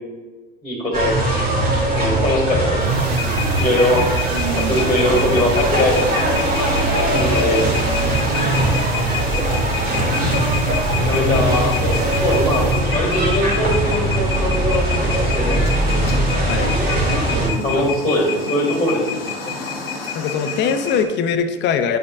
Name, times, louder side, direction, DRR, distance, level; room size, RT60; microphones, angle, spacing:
voice 1, 0.6-1.5 1.9-3.1 3.6-4.1 4.6-6.1 7.1-7.7 11.1-16.0 17.2-19.6, left 1 dB, 15° left, -2 dB, 1.8 m, -22 dB
sound 1, 0.9-17.5, right 1 dB, 30° right, 1.7 m, -20 dB
sound 2, 2.8-13.2, right 6 dB, 65° right, 0.6 m, -28 dB
sound 3, 3.1-21.0, left 7 dB, 80° left, 1.0 m, -30 dB
voice 2, 11.0-11.7 16.4-16.8 17.7-17.9 18.1-18.2 20.1-22.0, left 7 dB, 40° left, 9 dB, 0.6 m, -22 dB
8.3 x 5.2 x 2.3 m, 1.3 s
hypercardioid pair, 80°, 29 cm